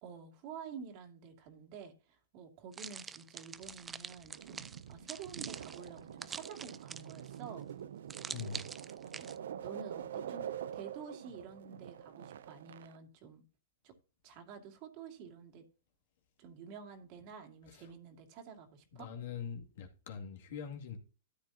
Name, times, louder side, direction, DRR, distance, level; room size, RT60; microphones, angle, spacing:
voice 1, 0.0-7.7 9.0-9.3 9.6-13.4 13.8-13.9 14.2-15.6 16.4-19.1, right 6 dB, 45° right, 2.4 m, -50 dB
sound 1, 2.7-7.3 8.1-9.4, right 6 dB, 15° right, 0.4 m, -45 dB
sound 2, 4.3-13.0, right 9 dB, 75° right, 0.5 m, -45 dB
voice 2, 8.3-8.6 17.7-17.9 18.9-21.0, left 6 dB, 70° left, 2.3 m, -43 dB
13.0 x 8.5 x 2.8 m
hypercardioid pair, 125°, 0 cm